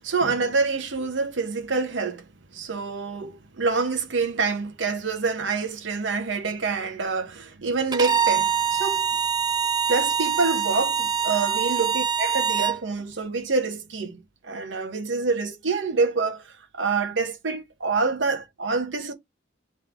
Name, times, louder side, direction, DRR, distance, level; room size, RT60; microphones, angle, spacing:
voice 1, 0.0-2.2 2.5-9.1 9.9-19.1, right 4 dB, 75° right, 0.9 m, -26 dB
Bowed string instrument, 7.9-12.8, right 7 dB, 20° right, 0.3 m, -24 dB
3.7 x 3.2 x 3.3 m
head